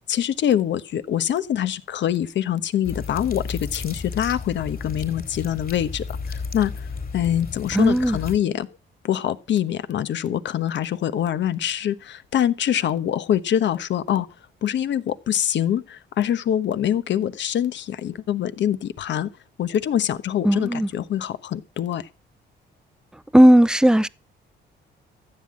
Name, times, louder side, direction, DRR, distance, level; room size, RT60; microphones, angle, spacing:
voice 1, 0.1-6.9 7.1-8.7 9.0-14.3 14.6-19.3 19.6-22.1, left 10 dB, 65° left, 1.1 m, -24 dB
sound 1, 2.8-8.4, left 4 dB, 50° left, 4.1 m, -33 dB
voice 2, 7.7-8.2 20.4-20.9 23.3-24.1, equal, 5° right, 0.6 m, -15 dB
14.5 x 7.8 x 7.5 m
cardioid pair, 90°, 20 cm